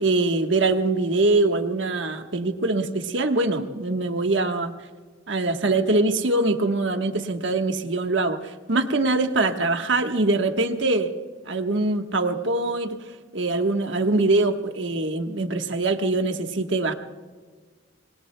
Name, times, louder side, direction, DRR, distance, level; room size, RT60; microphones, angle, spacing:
voice 1, 0.0-4.7 5.3-11.1 11.5-13.0 13.3-16.9, right 2 dB, 75° right, 5 dB, 1.3 m, -23 dB
26.5 x 21.0 x 2.2 m, 1.4 s
head